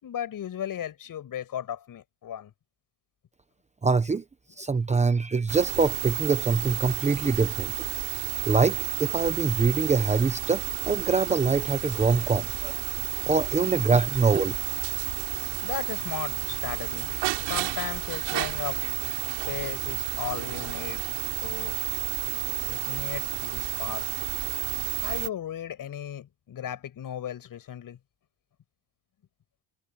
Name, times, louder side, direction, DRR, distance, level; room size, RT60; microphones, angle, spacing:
voice 1, 0.0-2.5 13.9-14.0 15.6-18.8 19.5-21.0 21.4-21.8 22.7-24.1 25.0-28.0, left 10 dB, 50° left, 6.7 m, -36 dB
voice 2, 3.8-4.2 4.6-7.7 8.5-12.7 13.3-14.6, right 4 dB, 15° right, 1.0 m, -24 dB
sound 1, 5.5-25.3, right 22 dB, 85° right, 6.5 m, -31 dB
cardioid pair, 130°, 43 cm